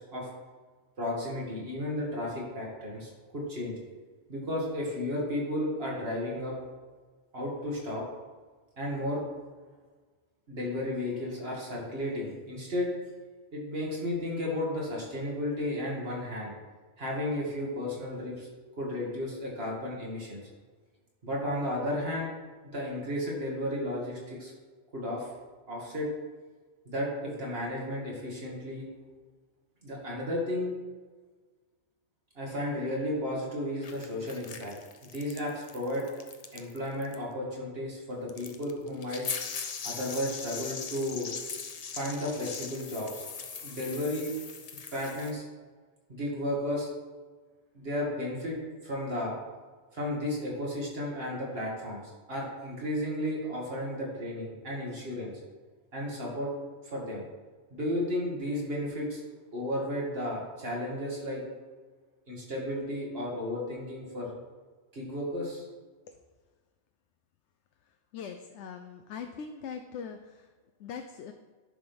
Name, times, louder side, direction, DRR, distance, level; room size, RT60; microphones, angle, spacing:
voice 1, 1.0-3.8 4.3-6.5 7.3-8.0 8.8-9.2 10.5-12.9 13.5-16.5 17.0-18.5 18.8-20.4 21.2-22.3 22.7-24.5 24.9-25.3 25.7-26.1 26.9-28.9 29.8-30.8 32.4-34.7 35.1-36.1 36.5-39.2 39.8-41.3 41.9-43.2 43.5-44.3 44.9-45.4 46.1-46.9 47.7-48.6 48.8-49.4 49.9-52.0 52.3-55.3 55.9-56.5 56.8-57.2 57.7-59.2 59.5-61.4 62.3-64.3 64.9-65.7, left 1 dB, 55° right, -4 dB, 2.4 m, -33 dB
sound 1, 33.8-36.8 37.0-37.1 38.3-45.3, left 5 dB, 45° left, 0.6 m, -40 dB
voice 2, 67.9-70.5 70.8-71.3, left 6 dB, 80° left, 6 dB, 0.9 m, -41 dB
10.5 x 3.6 x 6.0 m, 1.4 s
omnidirectional pair, 1.2 m